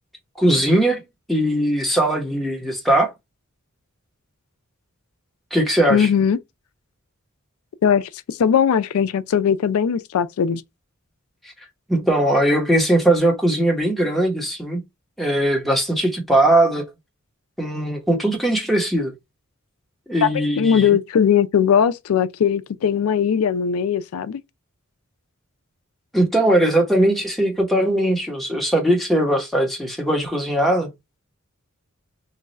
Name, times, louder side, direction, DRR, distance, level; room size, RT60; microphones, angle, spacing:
voice 1, 0.4-1.0 1.3-3.1 5.5-6.1 11.9-14.8 15.2-16.9 17.6-19.1 20.1-20.9 26.1-30.9, right 1 dB, ahead, 0.9 m, -19 dB
voice 2, 5.9-6.4 7.8-10.6 20.2-24.4, left 7 dB, 90° left, 0.4 m, -19 dB
3.1 x 2.3 x 3.9 m
head